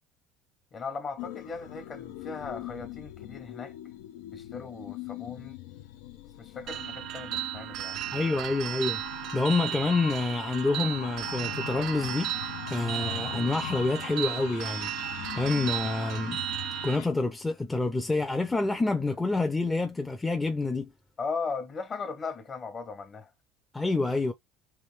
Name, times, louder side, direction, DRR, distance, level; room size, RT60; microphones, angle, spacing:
voice 1, 0.7-3.7 4.3-5.6 6.4-8.0 21.2-23.3, left 4 dB, 35° left, 1.0 m, -38 dB
sound 1, 1.2-17.1, left 12 dB, 80° left, 0.5 m, -41 dB
sound 2, 6.7-17.0, right 13 dB, 60° right, 0.4 m, -35 dB
voice 2, 8.1-9.0 9.3-14.9 15.3-16.4 16.8-20.9 23.7-24.3, left 3 dB, 10° left, 0.6 m, -28 dB
3.4 x 2.6 x 3.2 m
supercardioid pair, 100°, 0 cm